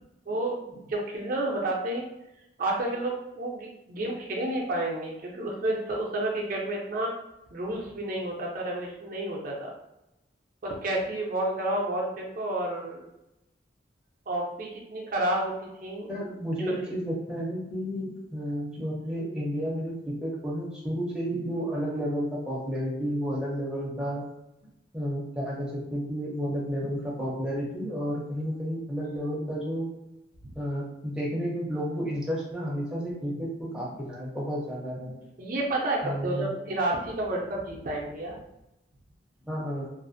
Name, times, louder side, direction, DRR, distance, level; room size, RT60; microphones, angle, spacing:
voice 1, 0.3-2.0 2.6-7.1 7.5-9.7 10.6-13.0 14.3-16.1 16.7-16.8 30.4-30.5 35.4-38.4, right 1 dB, 50° right, -1 dB, 0.5 m, -30 dB
voice 2, 16.1-24.2 24.9-29.9 30.5-35.2 36.0-36.5 39.5-39.9, equal, 5° right, -5 dB, 0.5 m, -31 dB
2.4 x 2.0 x 2.5 m, 0.88 s
head